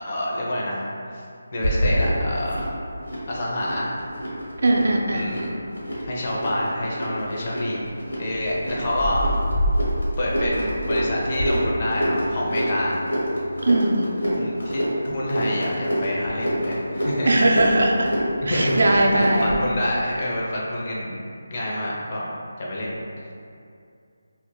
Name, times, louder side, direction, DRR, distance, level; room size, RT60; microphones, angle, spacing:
voice 1, 0.1-0.8 1.1-1.2 1.5-2.7 3.3-3.9 5.1-5.5 6.0-7.8 8.2-9.2 10.2-13.0 14.3-17.6 18.4-23.0, left 1 dB, 35° left, -4 dB, 0.4 m, -27 dB
sound 1, 1.6-19.6, equal, 75° left, 0.9 m, -27 dB
voice 2, 4.6-5.3 13.6-14.2 17.3-18.1 18.5-19.6, right 1 dB, 65° right, 0 dB, 0.3 m, -19 dB
2.1 x 2.1 x 2.9 m, 2.4 s
figure-of-eight pair, 160°, 0 cm